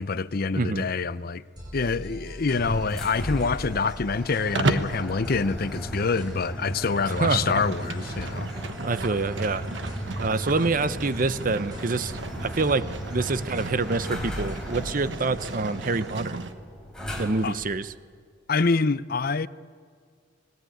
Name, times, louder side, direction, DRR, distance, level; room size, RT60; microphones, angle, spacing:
voice 1, 0.0-1.4 1.7-8.5 17.4-17.6 18.5-19.5, left 4 dB, 50° left, 0.6 m, -26 dB
voice 2, 0.6-0.9 7.1-7.6 8.8-9.7 10.2-12.1 12.4-16.4 17.2-17.9, right 3 dB, 45° right, 0.7 m, -26 dB
sound 1, 1.6-16.3, equal, 20° right, 7.0 m, -47 dB
sound 2, 2.5-17.7, equal, 5° left, 3.7 m, -35 dB
Livestock farm animals working animals, 4.6-5.0 6.7-16.5, right 2 dB, 70° right, 1.3 m, -34 dB
26.0 x 20.5 x 9.2 m
head